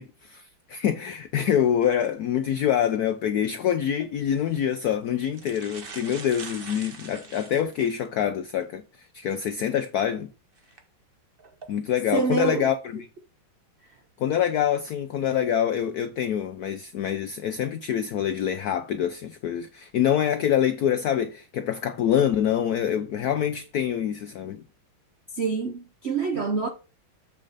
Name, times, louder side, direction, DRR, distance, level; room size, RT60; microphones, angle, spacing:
voice 1, 0.0-10.3 11.7-13.1 14.2-24.6, left 9 dB, 85° left, 0.8 m, -25 dB
sound 1, 3.9-4.1 4.9-5.0 5.3-8.1 8.6-8.7 10.6-10.8 11.4-11.7, right 4 dB, 35° right, 0.9 m, -42 dB
voice 2, 12.1-12.7 25.4-26.7, right 5 dB, 75° right, 0.6 m, -26 dB
7.5 x 6.4 x 4.1 m
omnidirectional pair, 2.3 m